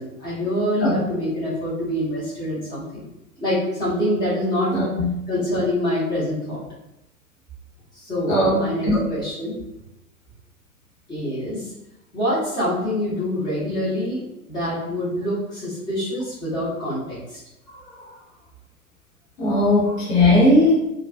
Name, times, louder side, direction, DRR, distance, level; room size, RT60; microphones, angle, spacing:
voice 1, 0.0-3.1 3.4-4.7 5.3-6.6 7.9-9.6 11.1-11.7 12.1-17.4, equal, 10° left, -10 dB, 0.8 m, -25 dB
voice 2, 4.7-5.1 8.3-8.5 8.8-9.0 19.4-20.7, left 1 dB, 40° left, -6 dB, 1.0 m, -17 dB
2.3 x 2.3 x 2.3 m, 0.89 s
figure-of-eight pair, 110°, 46 cm